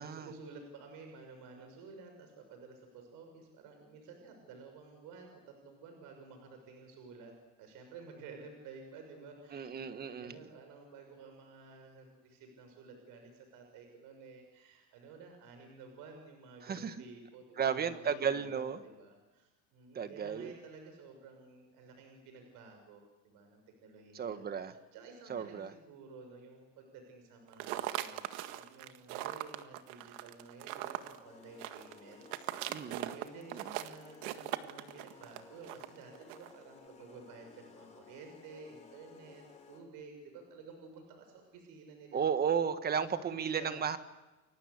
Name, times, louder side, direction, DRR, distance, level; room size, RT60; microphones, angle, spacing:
voice 1, 0.0-32.5 32.8-42.3 43.0-43.8, right 4 dB, 55° right, 5 dB, 6.4 m, -52 dB
voice 2, 9.5-10.3 16.6-16.9 17.6-18.8 19.9-20.5 24.1-24.7 25.3-25.7 32.7-33.1 33.5-33.6 42.1-44.0, right 7 dB, 25° right, 10 dB, 1.6 m, -34 dB
sound 1, 27.5-36.6, right 15 dB, 70° right, 1.9 m, -40 dB
sound 2, 31.2-40.0, left 5 dB, 15° left, 4.2 m, -57 dB
30.0 x 23.5 x 8.2 m, 1.1 s
cardioid pair, 150°, 39 cm